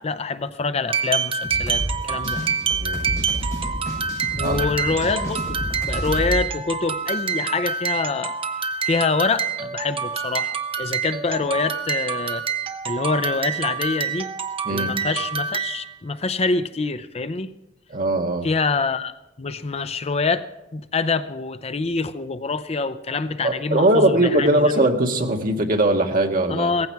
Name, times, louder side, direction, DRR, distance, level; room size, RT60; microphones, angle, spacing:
voice 1, 0.0-2.4 4.4-8.4 8.8-12.4 12.9-14.3 14.7-17.5 18.4-19.1 19.4-24.6 26.5-26.9, left 4 dB, 35° left, 12 dB, 0.6 m, -25 dB
sound 1, 0.9-15.9, right 6 dB, 30° right, 0.9 m, -27 dB
sound 2, 1.4-6.4, equal, 15° left, 6.3 m, -30 dB
voice 2, 2.8-3.3 4.4-4.6 14.7-14.9 17.9-18.5 23.4-26.7, right 1 dB, 50° right, 3 dB, 1.7 m, -20 dB
17.5 x 15.0 x 4.6 m, 0.94 s
head